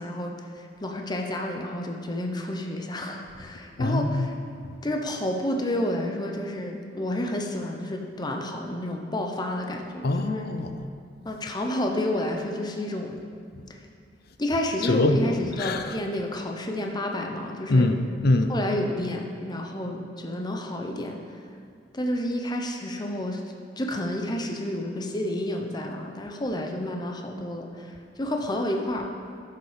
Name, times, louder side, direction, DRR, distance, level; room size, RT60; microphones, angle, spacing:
voice 1, 0.0-4.3 4.8-10.5 11.2-13.2 13.7-13.8 14.4-17.9 18.5-21.2 21.9-23.4 23.8-29.1, left 1 dB, 20° left, 2 dB, 0.8 m, -30 dB
voice 2, 3.8-4.3 10.0-10.8 14.8-15.2 15.6-16.0 17.7-18.5, left 2 dB, 55° left, 8 dB, 0.6 m, -23 dB
11.0 x 6.7 x 5.1 m, 2.3 s
head